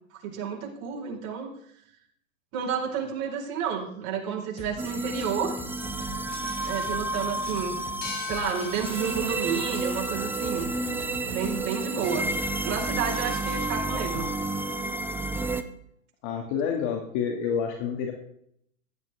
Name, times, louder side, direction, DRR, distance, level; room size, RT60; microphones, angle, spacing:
voice 1, 0.1-1.5 2.5-5.6 6.6-7.8 8.2-10.7 11.3-12.3 12.6-14.3, right 7 dB, 45° right, -1 dB, 4.8 m, -30 dB
sound 1, 4.6-13.6, left 1 dB, 15° left, 3.8 m, -44 dB
sound 2, 4.8-15.6, right 2 dB, 5° right, 0.6 m, -31 dB
sound 3, 8.0-11.4, left 7 dB, 65° left, 3.7 m, -41 dB
voice 2, 13.9-14.3 16.2-18.1, left 7 dB, 45° left, 2 dB, 2.3 m, -29 dB
15.5 x 12.0 x 3.6 m, 0.69 s
hypercardioid pair, 130°, 41 cm